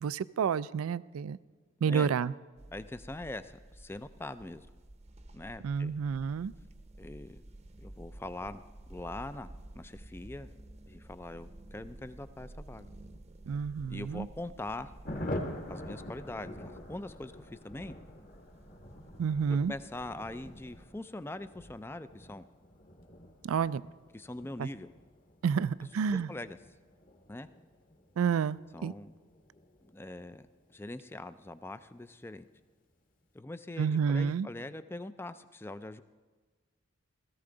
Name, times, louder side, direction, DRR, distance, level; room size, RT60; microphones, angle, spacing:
voice 1, 0.0-1.4 1.8-2.3 5.6-6.5 13.5-14.3 19.2-19.7 23.4-23.8 24.6-24.7 25.4-26.3 28.2-28.9 33.8-34.5, right 6 dB, 85° right, 19 dB, 0.3 m, -30 dB
sound 1, 2.6-20.9, right 1 dB, 30° right, 0.7 m, -52 dB
voice 2, 2.7-4.7 5.3-5.9 7.0-7.4 7.8-8.6 8.9-9.5 9.7-10.6 10.9-12.9 13.9-14.9 15.7-18.0 19.5-22.4 24.1-24.9 26.1-26.6 27.3-27.5 28.7-29.1 29.9-32.5 33.3-36.0, left 2 dB, 10° left, 13 dB, 0.3 m, -42 dB
Thunder, 15.0-31.2 31.5-31.6 31.8-32.0 32.2-32.6, left 1 dB, 40° left, 1.3 m, -46 dB
17.0 x 14.5 x 3.9 m, 1.4 s
head